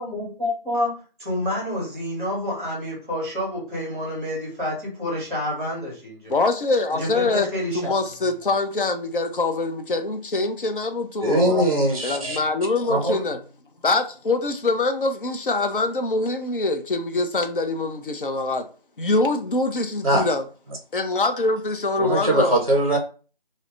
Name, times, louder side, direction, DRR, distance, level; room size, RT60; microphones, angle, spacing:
voice 1, 0.0-6.3 6.9-7.9 11.5-11.8 12.2-12.4, left 1 dB, 15° right, 1.0 m, -28 dB
voice 2, 6.3-7.5 7.7-11.6 12.0-13.4 13.8-18.7 19.0-20.4 20.9-22.6, left 3 dB, 60° left, 0.5 m, -24 dB
voice 3, 11.2-12.4 12.9-13.2 20.0-20.2 22.0-23.0, right 1 dB, 35° right, 0.5 m, -21 dB
2.3 x 2.0 x 3.1 m
figure-of-eight pair, 170°, 30 cm